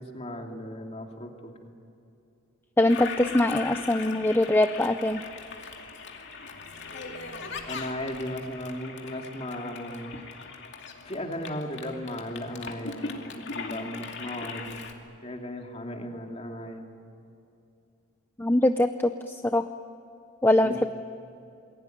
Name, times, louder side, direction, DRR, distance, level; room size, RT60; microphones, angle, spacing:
voice 1, 0.0-1.7 7.7-10.1 11.0-13.0 13.3-14.8 15.2-16.9 20.6-20.8, left 1 dB, 30° left, 2 dB, 2.6 m, -36 dB
voice 2, 2.8-5.2 18.4-19.6 20.4-20.9, left 1 dB, 10° left, 8 dB, 0.5 m, -23 dB
Toilet flush, 2.9-14.9, left 4 dB, 60° left, 2.5 m, -39 dB
28.0 x 21.0 x 9.3 m, 2.6 s
head